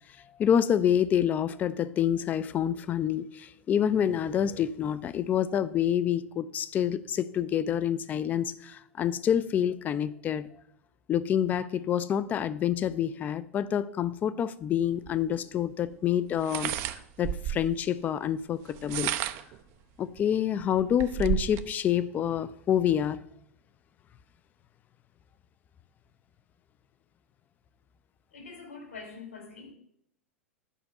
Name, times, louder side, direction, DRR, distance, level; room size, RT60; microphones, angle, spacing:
voice 1, 0.4-10.5 11.1-16.8 17.2-19.1 20.0-23.2, left 9 dB, 20° left, 0.4 m, -27 dB
sound 1, 15.1-15.2 16.4-17.8 18.7-19.6 20.2-20.3 20.6-21.7, right 12 dB, 35° right, 0.5 m, -32 dB
voice 2, 28.3-29.7, left 4 dB, 70° left, 2.5 m, -44 dB
9.9 x 5.2 x 5.9 m
figure-of-eight pair, 95°, 7 cm